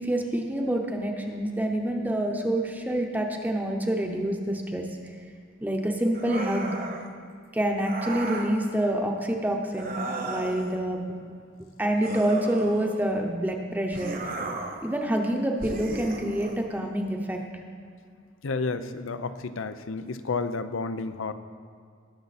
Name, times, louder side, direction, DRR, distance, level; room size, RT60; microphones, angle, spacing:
voice 1, 0.0-4.9 5.6-6.8 7.5-11.1 11.6-14.1 14.8-17.4, right 1 dB, 10° right, 2 dB, 0.8 m, -27 dB
sound 1, 6.1-7.1 7.8-8.6 9.7-10.8 12.0-13.2 13.9-14.9 15.6-16.6, right 2 dB, 45° right, 1.2 m, -35 dB
voice 2, 18.4-21.3, left 4 dB, 90° left, 11 dB, 0.6 m, -31 dB
19.5 x 6.9 x 4.2 m, 2.2 s
head